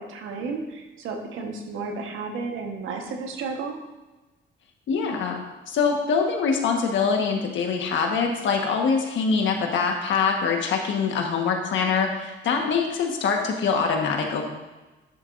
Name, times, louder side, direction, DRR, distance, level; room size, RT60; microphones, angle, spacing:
voice 1, 0.0-3.8, right 4 dB, 85° right, 3 dB, 1.3 m, -32 dB
voice 2, 4.9-14.4, left 5 dB, 70° left, 2 dB, 1.4 m, -24 dB
11.0 x 6.8 x 2.6 m, 1.1 s
cardioid pair, 90°, 20 cm